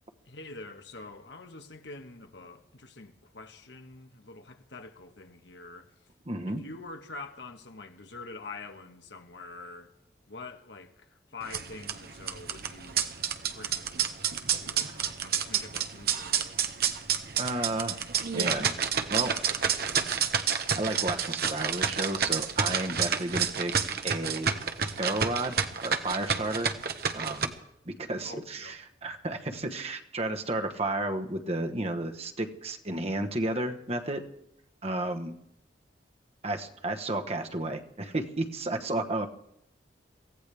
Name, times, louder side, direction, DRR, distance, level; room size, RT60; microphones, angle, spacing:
voice 1, 0.2-5.9 6.5-9.9 10.3-13.1 13.5-14.2 14.5-16.6 28.2-28.8, left 3 dB, 75° left, 1.5 m, -46 dB
voice 2, 6.3-6.6 17.4-18.0 18.3-18.7 19.1-19.3 20.8-23.7 24.0-24.5 24.8-26.7 27.1-27.5 27.8-34.2 34.8-35.3 36.4-39.3, right 2 dB, 35° right, 1.2 m, -32 dB
sound 1, 11.4-27.5, right 7 dB, 60° right, 1.1 m, -29 dB
23.5 x 16.5 x 3.5 m
head